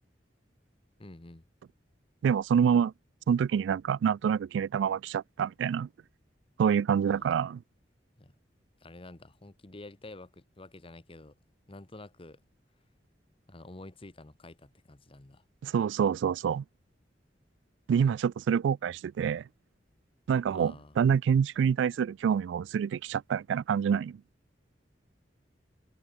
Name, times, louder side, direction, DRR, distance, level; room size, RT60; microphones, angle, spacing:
voice 1, 1.0-1.4 7.1-7.3 8.2-8.3 8.8-11.4 11.7-12.4 13.5-15.4 20.5-21.0, left 2 dB, 30° left, 1.2 m, -49 dB
voice 2, 2.2-2.9 3.3-5.9 6.6-7.6 15.6-16.6 17.9-19.4 20.3-24.2, right 7 dB, 90° right, 0.3 m, -27 dB
head